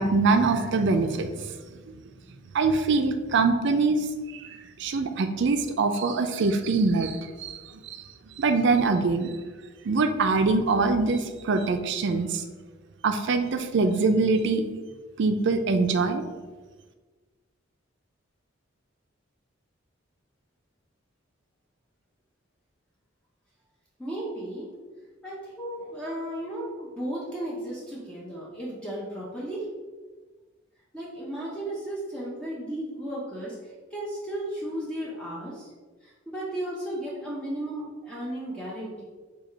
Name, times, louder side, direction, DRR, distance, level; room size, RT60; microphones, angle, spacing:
voice 1, 0.0-1.4 2.5-4.0 4.8-8.0 8.4-9.3 9.8-12.4 13.0-14.6 15.2-16.2, right 3 dB, 65° right, 7 dB, 0.4 m, -23 dB
voice 2, 24.0-24.7 25.2-29.7 30.9-35.7 36.0-39.0, right 1 dB, 5° left, -7 dB, 0.7 m, -34 dB
4.8 x 2.4 x 4.5 m, 1.3 s
head